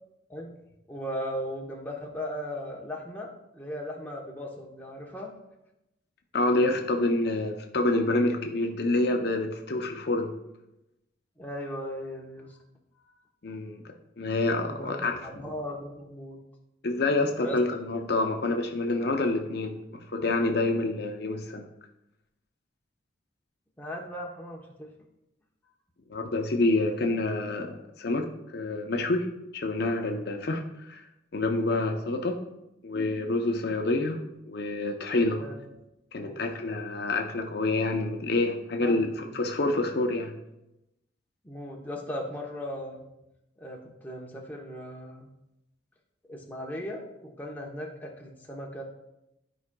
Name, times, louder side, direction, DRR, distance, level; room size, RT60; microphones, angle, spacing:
voice 1, 0.9-5.3 11.4-12.6 13.0-13.1 14.7-16.4 17.4-17.6 23.8-24.9 35.4-35.5 36.2-36.4 38.8-39.3 41.4-43.0 43.6-45.3 46.3-48.8, equal, 10° left, -2 dB, 0.8 m, -37 dB
voice 2, 6.3-10.3 13.4-15.2 16.8-21.7 26.1-29.3 29.5-31.1 31.3-32.4 32.8-35.4 36.1-40.3, left 2 dB, 55° left, 3 dB, 0.6 m, -27 dB
12.5 x 4.8 x 2.2 m, 0.90 s
head